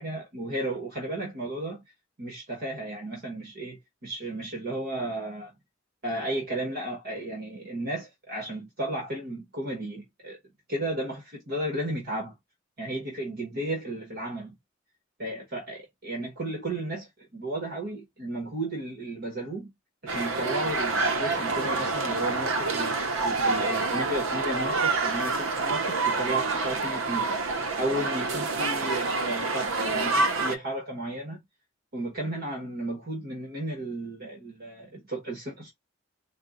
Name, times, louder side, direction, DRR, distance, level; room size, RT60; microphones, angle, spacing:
voice 1, 0.0-1.8 2.2-5.5 6.0-10.4 10.7-12.3 12.8-14.6 15.2-19.7 20.0-27.3 27.8-31.4 31.9-35.7, right 1 dB, 55° right, 1.2 m, -34 dB
sound 1, 20.1-30.6, right 3 dB, 85° right, 0.7 m, -27 dB
4.3 x 2.1 x 3.8 m
head